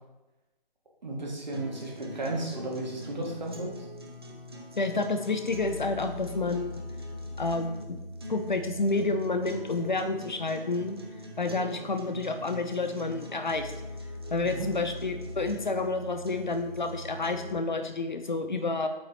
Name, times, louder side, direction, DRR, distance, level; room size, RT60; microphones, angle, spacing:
voice 1, 1.0-3.8 14.4-14.7, right 2 dB, 45° right, -1 dB, 1.8 m, -34 dB
sound 1, 1.5-17.5, left 1 dB, 25° right, 0.6 m, -41 dB
voice 2, 4.8-6.8 7.4-8.0 8.3-11.0 11.4-13.7 14.3-18.9, left 3 dB, 50° left, 7 dB, 0.6 m, -29 dB
7.8 x 5.7 x 2.8 m, 1.0 s
figure-of-eight pair, 150°, 30 cm